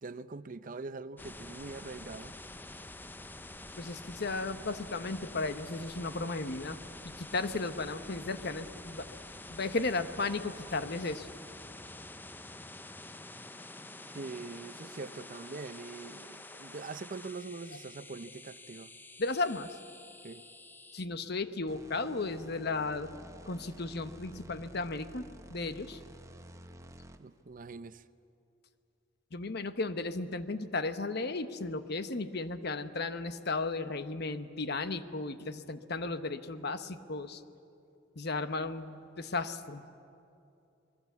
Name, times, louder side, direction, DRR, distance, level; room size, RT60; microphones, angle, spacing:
voice 1, 0.0-2.4 14.1-18.9 20.2-20.4 27.2-28.0, right 3 dB, 45° right, 0.6 m, -43 dB
sound 1, 1.2-21.1, left 2 dB, 10° left, 0.6 m, -48 dB
voice 2, 3.8-6.8 7.2-9.1 9.5-11.3 19.2-19.8 20.9-23.1 23.5-26.0 29.3-37.4 38.2-39.8, left 3 dB, 55° left, 1.0 m, -35 dB
sound 2, 21.7-27.4, right 1 dB, 15° right, 0.9 m, -52 dB
27.0 x 21.0 x 8.2 m
head